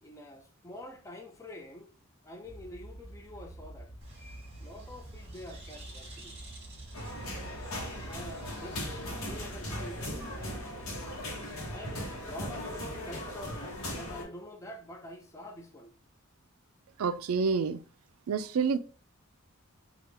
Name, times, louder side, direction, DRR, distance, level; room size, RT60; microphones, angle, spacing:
voice 1, 0.0-1.9 2.2-3.9 4.6-6.4 7.9-10.3 11.7-15.9, left 1 dB, 15° left, 0.5 m, -46 dB
sound 1, 2.4-12.5, right 1 dB, 40° left, 1.5 m, -48 dB
Bird, 4.0-10.6, right 1 dB, 30° right, 1.2 m, -52 dB
sound 2, 6.9-14.2, left 1 dB, 85° left, 1.0 m, -38 dB
voice 2, 17.0-17.8 18.3-18.8, right 5 dB, 85° right, 0.4 m, -28 dB
3.5 x 2.4 x 3.3 m
head